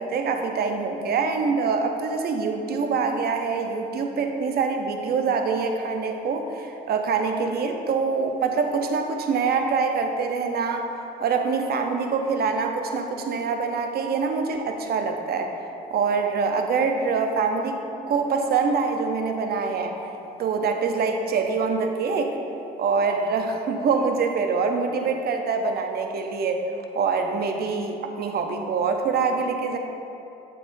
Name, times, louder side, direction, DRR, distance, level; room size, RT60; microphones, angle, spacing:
voice 1, 0.0-10.9 11.2-15.5 15.9-19.9 20.4-22.4 22.8-26.6 26.9-29.8, right 5 dB, 60° right, 4 dB, 0.7 m, -25 dB
8.0 x 6.1 x 2.6 m, 2.8 s
supercardioid pair, 60°, 18 cm